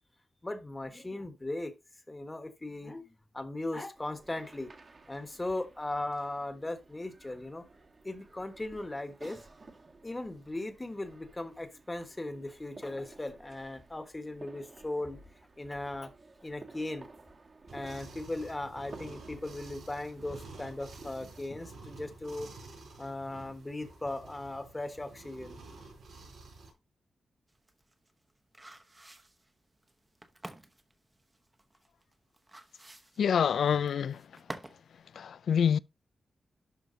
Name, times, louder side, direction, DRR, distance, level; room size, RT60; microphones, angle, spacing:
voice 1, 0.4-1.7 2.1-4.7 5.1-7.7 8.0-9.4 10.0-15.2 15.6-16.1 16.4-17.1 17.7-22.5 23.0-25.6, left 2 dB, 20° left, 1.3 m, -38 dB
sound 1, 3.9-21.5, right 3 dB, 40° right, 1.4 m, -55 dB
sound 2, 17.7-26.7, right 3 dB, 80° right, 5.0 m, -50 dB
sound 3, 27.5-34.9 35.2-35.3, right 1 dB, 15° right, 0.9 m, -49 dB
voice 2, 33.2-34.2 35.1-35.8, left 7 dB, 85° left, 0.3 m, -26 dB
11.5 x 4.5 x 2.7 m
wide cardioid pair, 125°, 0 cm